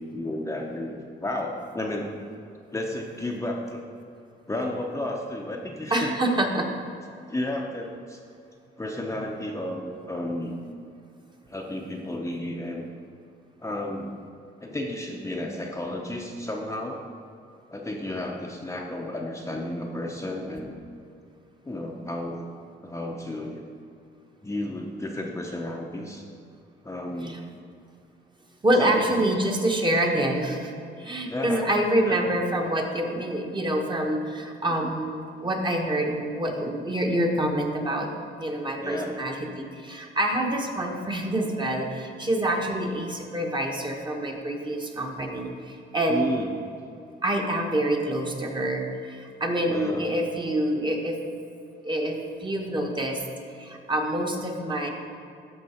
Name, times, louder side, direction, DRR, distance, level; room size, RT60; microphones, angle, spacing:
voice 1, 0.0-2.2 2.7-3.8 4.5-6.1 7.3-8.2 8.8-10.6 11.5-12.8 13.6-14.1 14.6-17.0 17.7-20.8 21.6-22.5 22.8-23.6 24.4-26.2 26.8-27.5 28.8-29.3 31.3-31.7 32.1-32.2 34.8-34.9 38.8-39.1 46.1-46.5 49.6-50.1, left 1 dB, 15° left, 0 dB, 0.8 m, -32 dB
voice 2, 5.9-6.7 27.2-27.4 28.6-30.7 31.0-38.1 38.4-46.4 47.2-51.2 51.8-53.2 53.6-54.9, right 1 dB, 25° right, 1 dB, 1.3 m, -26 dB
13.0 x 4.6 x 4.4 m, 2.5 s
cardioid pair, 90°, 20 cm